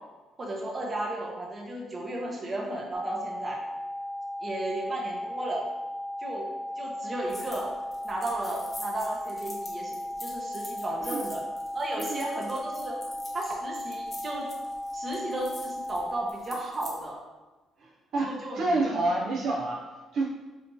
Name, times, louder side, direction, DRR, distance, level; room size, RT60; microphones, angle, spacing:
voice 1, 0.4-3.6 4.4-5.7 6.2-6.5 6.8-7.7 8.0-11.4 11.7-13.0 13.3-14.5 14.9-17.2 18.2-18.8, right 1 dB, 30° right, -2 dB, 0.8 m, -34 dB
sound 1, 2.9-16.3, left 1 dB, 10° right, 0.4 m, -36 dB
sound 2, 7.3-7.6 7.9-17.0, left 1 dB, 10° left, 0.8 m, -44 dB
voice 2, 18.1-19.8 20.1-20.2, right 2 dB, 60° right, -4 dB, 0.5 m, -28 dB
5.0 x 2.8 x 2.8 m, 1.2 s
cardioid pair, 125°, 0 cm